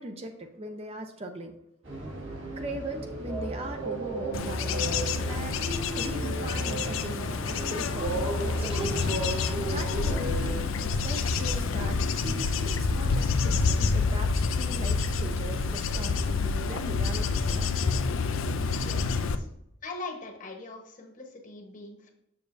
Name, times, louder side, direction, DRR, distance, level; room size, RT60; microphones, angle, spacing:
voice 1, 0.0-1.5 2.6-5.6 6.0-9.1 9.7-17.7, right 1 dB, 30° right, 5 dB, 0.6 m, -39 dB
sound 1, 1.8-10.7, right 2 dB, 75° right, 2.1 m, -34 dB
Bird / Insect / Wind, 4.3-19.4, left 4 dB, 80° left, 0.5 m, -28 dB
voice 2, 18.8-19.5 19.8-22.1, left 3 dB, 40° left, 3 dB, 1.1 m, -41 dB
6.8 x 6.6 x 2.6 m, 0.81 s
head